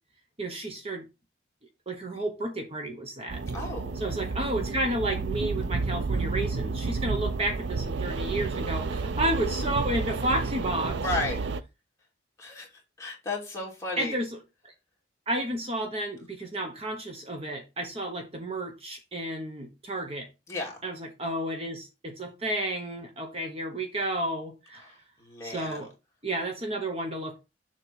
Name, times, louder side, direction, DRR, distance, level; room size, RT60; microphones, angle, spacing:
voice 1, 0.4-1.0 1.9-3.4 3.9-11.0 14.0-14.4 14.6-14.7 15.3-20.3 20.8-24.9 25.4-25.9 26.2-27.4, right 1 dB, 30° right, 1.1 m, -31 dB
sound 1, 3.3-11.6, right 4 dB, 65° right, 0.4 m, -31 dB
voice 2, 3.5-3.9 10.9-11.4 12.4-12.7 13.0-14.2 20.5-20.8 24.8-25.0 25.2-25.8, left 2 dB, 15° left, 2.4 m, -33 dB
7.1 x 3.2 x 5.7 m
head